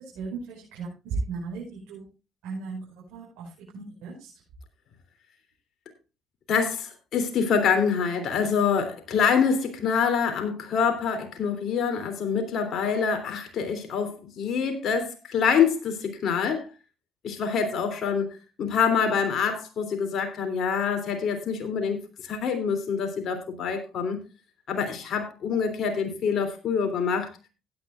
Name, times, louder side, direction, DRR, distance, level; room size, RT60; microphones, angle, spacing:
voice 1, 0.1-2.1 2.4-4.4, right 4 dB, 75° right, -4 dB, 5.4 m, -36 dB
voice 2, 6.5-16.7 17.2-24.2 24.7-27.3, left 6 dB, 60° left, 6 dB, 3.2 m, -26 dB
16.0 x 10.0 x 2.5 m, 0.30 s
hypercardioid pair, 60°, 0 cm